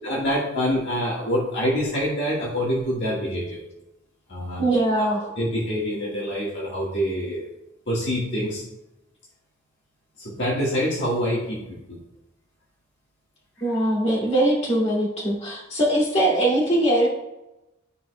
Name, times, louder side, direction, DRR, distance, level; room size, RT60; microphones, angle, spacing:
voice 1, 0.0-3.6 4.3-4.7 5.0-7.5 7.9-8.6 10.2-12.0 13.6-13.7, equal, 65° left, -5 dB, 1.7 m, -26 dB
voice 2, 4.6-5.2 13.6-17.1, right 1 dB, 35° left, -5 dB, 2.5 m, -21 dB
12.5 x 4.9 x 2.3 m, 0.94 s
head